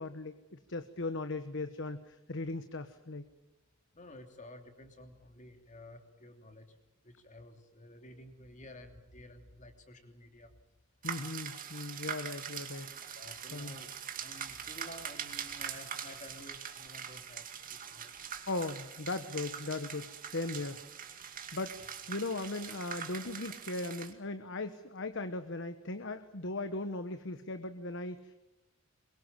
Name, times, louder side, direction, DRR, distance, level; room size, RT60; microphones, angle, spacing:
voice 1, 0.0-3.2 11.0-12.9 13.5-13.7 18.5-21.0 21.5-28.4, left 2 dB, 60° left, 10 dB, 1.2 m, -38 dB
voice 2, 3.9-6.8 7.0-10.5 13.1-18.5, left 1 dB, 35° left, 6 dB, 3.0 m, -52 dB
sound 1, 11.0-24.1, right 8 dB, 40° right, 2.3 m, -43 dB
23.0 x 22.5 x 7.5 m, 1.1 s
head